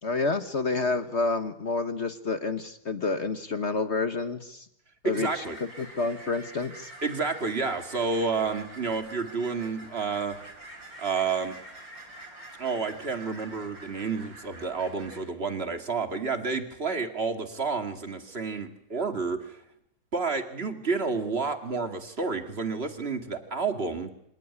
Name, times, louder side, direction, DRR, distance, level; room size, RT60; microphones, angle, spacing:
voice 1, 0.0-4.7 5.0-5.4 5.8-6.9, left 3 dB, 40° left, 10 dB, 1.2 m, -29 dB
voice 2, 5.0-5.6 7.0-10.4 11.0-11.6 12.6-19.6 20.1-24.1, right 4 dB, 30° right, 7 dB, 2.3 m, -30 dB
sound 1, 5.1-15.2, right 1 dB, 60° right, 5.4 m, -46 dB
26.5 x 18.0 x 10.0 m, 0.76 s
omnidirectional pair, 2.3 m